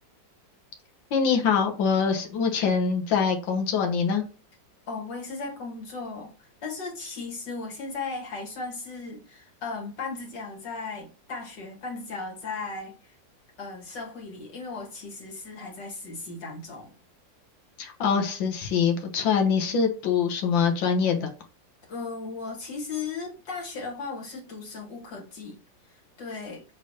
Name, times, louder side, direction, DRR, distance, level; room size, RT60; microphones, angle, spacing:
voice 1, 1.1-4.2 17.8-21.3, left 6 dB, 85° left, 1.8 m, -24 dB
voice 2, 4.9-13.1 13.6-16.9 21.9-25.6 26.2-26.6, left 4 dB, 70° left, 2.4 m, -36 dB
7.0 x 3.2 x 4.2 m
omnidirectional pair, 2.0 m